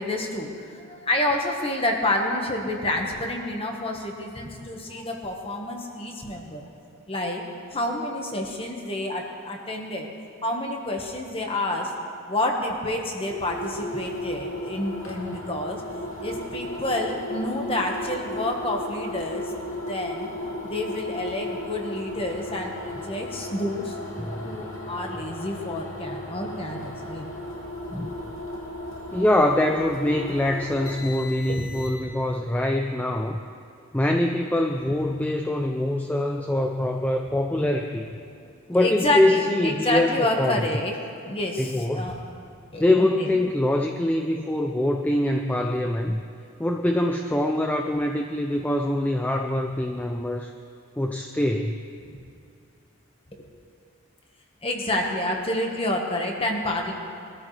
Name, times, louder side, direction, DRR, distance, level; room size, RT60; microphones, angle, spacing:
voice 1, 0.0-6.6 7.1-7.4 7.7-10.1 10.4-11.9 12.3-15.8 16.2-19.5 19.9-20.3 20.6-24.0 24.4-27.3 31.5-31.7 38.4-38.5 38.8-41.0 41.3-42.2 42.7-43.4 53.4-53.5 54.6-56.9, left 1 dB, 25° left, 1 dB, 1.5 m, -28 dB
sound 1, 13.2-32.2, left 1 dB, 75° left, 2.7 m, -35 dB
voice 2, 24.2-24.6 27.9-28.2 29.1-33.4 33.9-38.1 38.7-40.8 41.6-42.1 42.8-46.2 46.6-50.5 51.0-51.8, left 1 dB, 10° left, 3 dB, 0.4 m, -24 dB
22.0 x 13.5 x 3.3 m, 2.6 s
head